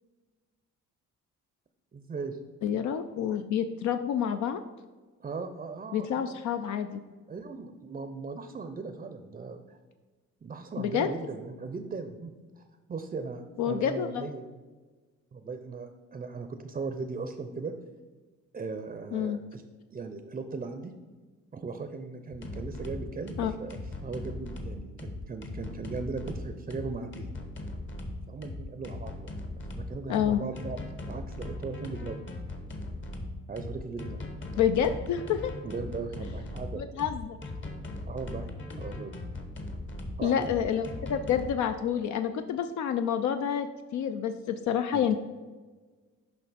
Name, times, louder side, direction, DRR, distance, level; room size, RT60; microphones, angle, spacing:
voice 1, 1.9-2.4 5.2-6.4 7.3-9.8 10.4-12.6 12.9-14.5 15.3-17.7 18.5-19.6 19.9-20.9 21.5-27.3 28.3-29.3 29.8-32.2 33.5-34.2 35.6-36.8 38.1-38.5 38.8-39.1 40.2-40.7 44.9-45.1, right 4 dB, 25° right, 8 dB, 0.5 m, -38 dB
voice 2, 2.6-4.6 5.9-7.0 10.8-11.1 13.6-14.3 19.1-19.4 23.4-23.5 30.1-30.4 34.6-35.5 36.8-37.4 40.2-43.7 43.9-45.2, left 8 dB, 70° left, 8 dB, 0.5 m, -28 dB
sound 1, 22.3-41.5, left 2 dB, 40° left, 1.1 m, -39 dB
6.7 x 5.2 x 4.0 m, 1.3 s
cardioid pair, 90°, 30 cm